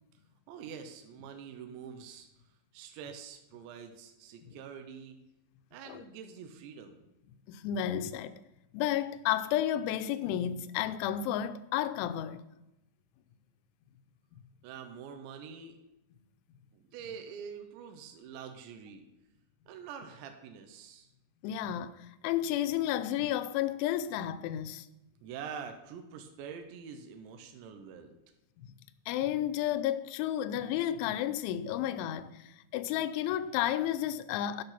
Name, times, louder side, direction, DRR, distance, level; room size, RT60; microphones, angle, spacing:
voice 1, 0.5-2.3 2.7-5.2 5.7-7.1 14.6-15.8 16.7-19.1 19.7-21.1 25.2-28.1, right 7 dB, 80° right, 3.0 m, -45 dB
voice 2, 7.5-8.4 8.7-12.4 21.4-24.9 29.1-34.6, left 11 dB, 85° left, 3.0 m, -32 dB
10.5 x 6.6 x 5.7 m
omnidirectional pair, 5.4 m